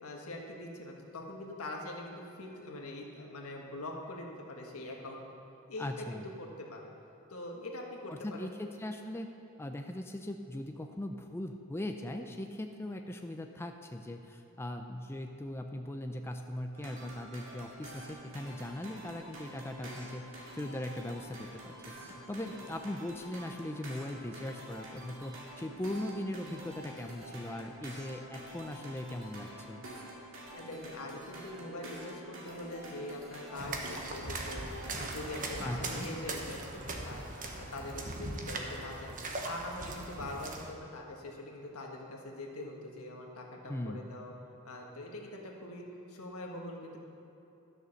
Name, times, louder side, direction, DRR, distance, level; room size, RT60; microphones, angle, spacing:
voice 1, 0.0-5.2 5.7-6.9 7.3-8.5 22.5-22.6 30.4-37.3 37.6-39.2 39.4-44.3 44.6-47.0, left 1 dB, 80° left, 0 dB, 1.5 m, -43 dB
voice 2, 5.8-6.3 8.1-9.3 9.6-29.9 35.6-36.1 43.7-44.1, left 1 dB, 10° left, 4 dB, 0.4 m, -40 dB
sound 1, 16.7-36.0, right 1 dB, 65° right, 2.2 m, -48 dB
sound 2, 33.6-40.7, right 2 dB, 40° right, 1.1 m, -40 dB
12.5 x 6.6 x 6.5 m, 2.9 s
head